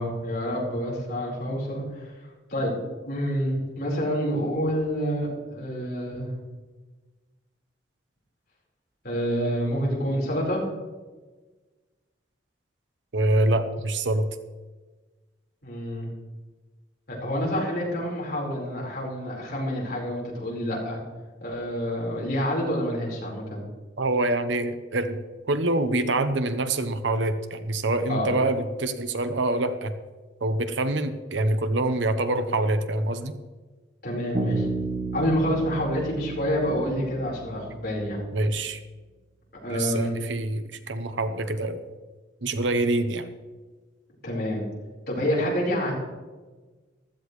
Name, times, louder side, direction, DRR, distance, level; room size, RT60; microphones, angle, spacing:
voice 1, 0.0-2.1 2.5-2.7 3.0-6.3 9.0-10.6 15.6-16.1 17.1-21.0 21.4-23.6 28.1-28.3 34.0-34.7 35.1-38.2 39.6-40.2 44.2-44.6 45.1-45.9, equal, 55° left, -4 dB, 4.6 m, -27 dB
voice 2, 13.1-14.3 24.0-25.2 25.5-29.9 30.4-33.4 38.3-38.8 39.7-41.8 42.4-43.3, right 2 dB, 85° right, 9 dB, 1.0 m, -25 dB
Bass guitar, 34.3-38.0, right 3 dB, 50° right, 1.6 m, -33 dB
15.5 x 13.0 x 3.2 m, 1.3 s
head